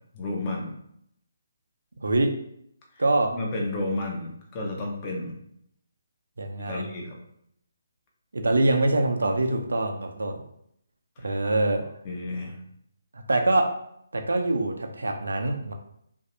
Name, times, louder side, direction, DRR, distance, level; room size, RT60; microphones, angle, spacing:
voice 1, 0.1-0.7 3.3-5.3 6.7-7.2 11.2-11.4 12.0-12.6, left 2 dB, 25° left, -1 dB, 0.7 m, -31 dB
voice 2, 3.0-3.3 6.4-6.8 8.3-10.4 11.2-11.8 13.1-13.7 14.1-15.7, right 2 dB, 65° right, 5 dB, 0.5 m, -24 dB
3.2 x 2.6 x 2.6 m, 0.71 s
figure-of-eight pair, 140°, 0 cm